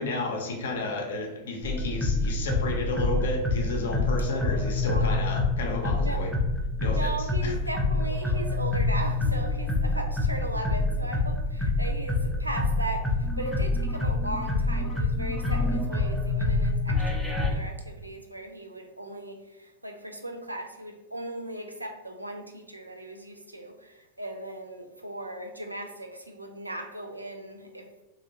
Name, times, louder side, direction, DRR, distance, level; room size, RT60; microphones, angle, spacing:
voice 1, 0.0-6.3 6.8-7.5, left 2 dB, 60° left, 1 dB, 0.6 m, -32 dB
sound 1, 1.6-17.5, left 2 dB, ahead, 0.5 m, -27 dB
voice 2, 6.9-27.9, right 1 dB, 85° right, 4 dB, 0.3 m, -37 dB
2.6 x 2.5 x 2.6 m, 1.0 s
figure-of-eight pair, 90°, 0 cm